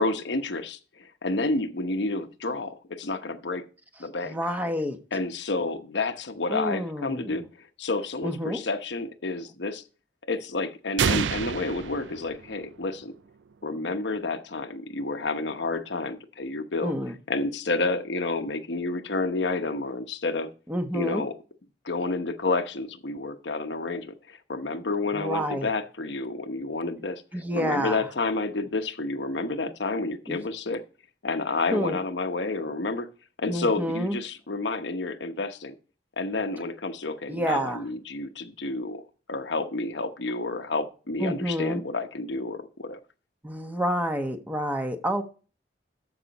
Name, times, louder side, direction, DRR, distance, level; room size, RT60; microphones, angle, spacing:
voice 1, 0.0-3.6 4.0-4.4 5.1-7.4 7.8-9.8 10.3-13.1 13.6-16.9 17.3-20.5 20.9-21.3 21.8-27.2 27.5-30.8 31.2-33.1 33.4-35.7 36.2-39.0 39.3-43.0, left 3 dB, 75° left, 1.0 m, -30 dB
voice 2, 4.3-5.0 6.5-7.4 8.2-8.6 16.8-17.1 20.7-21.2 25.1-25.7 27.3-28.0 30.3-30.4 31.7-32.0 33.5-34.2 37.3-37.8 41.2-41.8 43.4-45.2, equal, 10° right, 1.1 m, -28 dB
sound 1, 11.0-12.9, right 6 dB, 85° right, 0.5 m, -28 dB
13.5 x 5.9 x 4.1 m
head